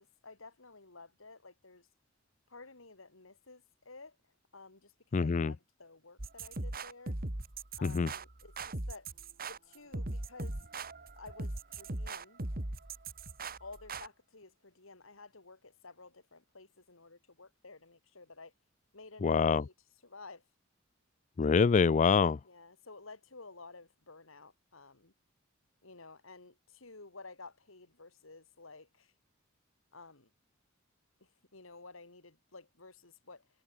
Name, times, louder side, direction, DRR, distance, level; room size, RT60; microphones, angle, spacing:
voice 1, 0.0-1.9 2.5-4.2 4.5-4.9 5.2-7.2 7.8-9.1 9.5-10.5 11.1-12.4 13.6-18.5 18.9-19.7 20.0-20.4 22.4-25.1 25.8-29.1 29.9-30.3 31.2-33.5, left 3 dB, 80° left, 3.0 m, -53 dB
voice 2, 5.1-5.5 7.8-8.1 19.2-19.6 21.4-22.4, left 5 dB, 35° left, 0.4 m, -25 dB
sound 1, 6.2-14.1, right 2 dB, 45° right, 2.4 m, -39 dB
head